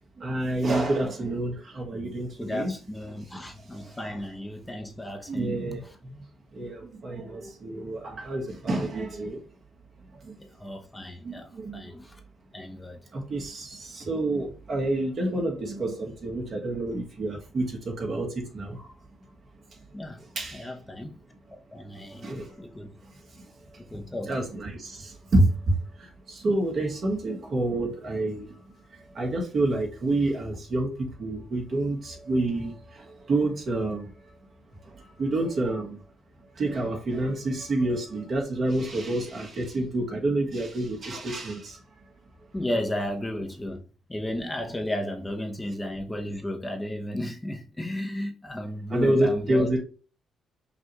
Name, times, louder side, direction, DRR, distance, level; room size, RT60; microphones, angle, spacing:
voice 1, 0.2-2.8 3.3-4.2 5.3-6.2 6.5-9.4 10.2-10.3 11.2-12.0 13.1-18.9 20.2-20.7 21.9-22.5 23.4-23.5 24.3-28.5 28.9-34.1 34.8-36.0 36.6-41.8 48.9-49.8, right 2 dB, 50° right, 1.4 m, -28 dB
voice 2, 2.4-5.6 10.6-11.5 11.7-12.1 12.5-13.0 19.9-20.2 20.5-21.2 21.7-22.3 22.6-22.9 23.8-24.3 42.5-43.8 44.1-49.7, left 1 dB, 15° left, 0.8 m, -33 dB
5.7 x 2.4 x 3.0 m
cardioid pair, 90°, 0 cm